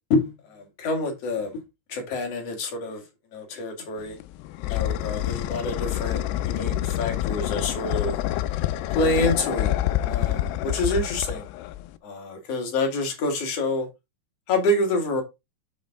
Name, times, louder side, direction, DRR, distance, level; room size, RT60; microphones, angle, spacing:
voice 1, 0.1-1.6 1.9-3.0 3.3-4.2 4.6-8.2 8.9-9.7 10.0-11.5 12.0-13.9 14.5-15.2, left 2 dB, 45° left, 2.5 m, -27 dB
sound 1, 4.0-12.0, left 14 dB, 85° left, 2.7 m, -27 dB
7.6 x 5.5 x 3.7 m
omnidirectional pair, 4.7 m